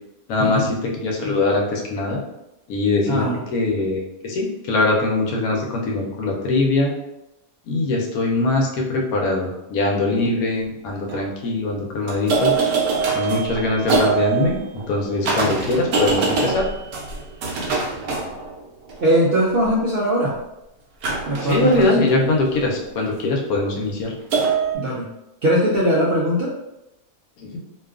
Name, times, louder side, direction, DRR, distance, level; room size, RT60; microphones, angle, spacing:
voice 1, 0.3-0.7 1.0-2.2 2.7-3.2 3.5-6.9 7.7-12.5 13.1-14.6 14.9-16.7 21.5-24.1 27.4-27.6, left 2 dB, 85° left, 0 dB, 1.1 m, -22 dB
voice 2, 3.1-3.4 19.0-20.3 21.3-22.3 24.7-25.1 25.4-26.5, right 1 dB, 65° right, -6 dB, 0.5 m, -20 dB
sound 1, 10.1-10.2 10.8-11.2 12.1-19.0 21.0-23.0 24.3-24.8, right 4 dB, 85° right, 1.1 m, -24 dB
2.7 x 2.3 x 2.3 m, 0.90 s
omnidirectional pair, 1.5 m